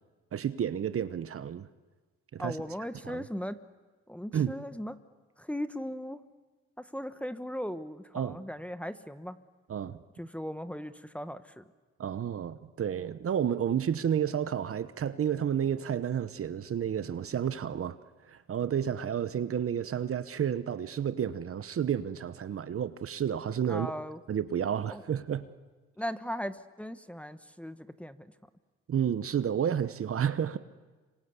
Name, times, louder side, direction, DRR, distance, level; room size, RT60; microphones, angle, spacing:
voice 1, 0.3-1.7 2.3-2.6 3.0-3.2 4.3-4.6 8.1-8.4 9.7-10.0 12.0-18.0 18.3-23.9 24.3-25.5 28.9-30.6, right 8 dB, 50° right, 1.0 m, -31 dB
voice 2, 2.4-3.6 4.1-4.9 5.4-6.2 6.8-9.4 10.2-11.6 23.7-24.2 24.9-25.0 26.0-28.3, equal, 5° left, 1.2 m, -38 dB
26.5 x 25.5 x 8.3 m
cardioid pair, 90°, 30 cm